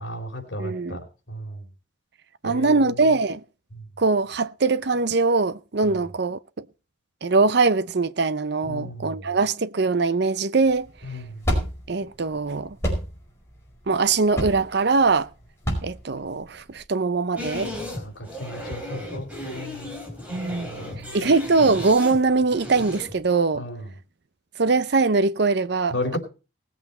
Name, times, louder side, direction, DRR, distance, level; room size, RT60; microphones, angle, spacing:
voice 1, 0.0-1.6 2.4-3.0 5.9-6.0 8.6-9.3 11.0-11.3 18.0-19.9 20.6-21.2 23.5-23.9 25.9-26.2, left 1 dB, 60° left, 4.3 m, -34 dB
voice 2, 0.6-1.0 2.4-3.4 4.0-6.7 7.2-10.9 11.9-12.8 13.9-15.3 15.8-17.7 20.3-20.7 21.1-23.6 24.6-26.2, right 4 dB, 55° right, 0.6 m, -22 dB
sound 1, 10.6-16.8, equal, 15° left, 5.1 m, -29 dB
sound 2, 17.4-23.2, left 1 dB, 5° right, 4.1 m, -35 dB
19.5 x 8.1 x 4.3 m
head